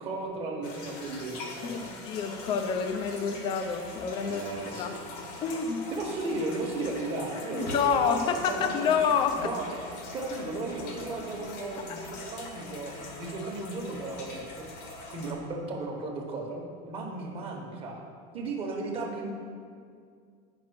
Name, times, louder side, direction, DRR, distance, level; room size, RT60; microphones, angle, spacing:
voice 1, 0.0-1.9 4.2-5.0 5.9-8.9 9.4-9.7 10.1-14.7 15.1-18.1 18.3-19.3, right 2 dB, 30° right, 1 dB, 1.2 m, -35 dB
sound 1, 0.6-15.3, left 3 dB, 85° left, 1.8 m, -42 dB
voice 2, 1.6-4.4 4.8-4.9 5.4-5.9 7.5-9.5 11.9-12.0, left 6 dB, 25° left, 7 dB, 0.5 m, -28 dB
8.6 x 5.9 x 6.0 m, 2.2 s
cardioid pair, 170°, 20 cm